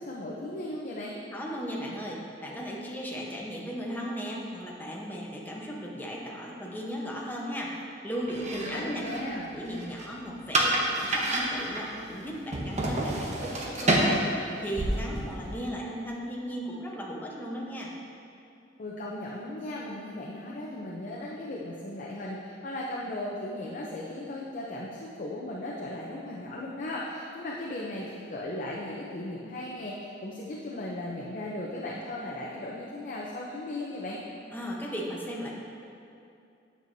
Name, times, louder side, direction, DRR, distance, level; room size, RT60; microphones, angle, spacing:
voice 1, 0.0-1.1 8.6-9.5 18.8-34.2, left 1 dB, 45° left, -4 dB, 0.7 m, -37 dB
voice 2, 1.3-7.7 8.0-9.1 9.3-14.2 14.6-17.9 34.5-35.5, equal, 10° left, -3 dB, 0.9 m, -36 dB
sound 1, 8.3-15.7, right 1 dB, 40° right, 0.9 m, -30 dB
9.1 x 6.8 x 2.7 m, 2.6 s
head